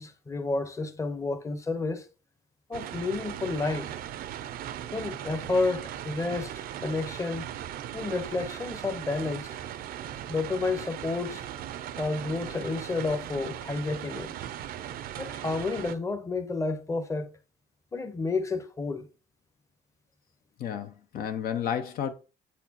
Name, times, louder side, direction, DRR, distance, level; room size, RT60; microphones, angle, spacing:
voice 1, 0.0-2.1 2.7-3.9 4.9-6.5 6.8-7.5 7.9-9.5 10.3-11.4 12.0-14.3 15.2-17.3 17.9-19.1, left 3 dB, 20° left, 0.8 m, -30 dB
sound 1, 2.7-16.0, right 11 dB, 60° right, 0.5 m, -38 dB
voice 2, 20.6-22.1, left 8 dB, 60° left, 0.6 m, -31 dB
8.1 x 4.2 x 2.9 m
cardioid pair, 110°, 17 cm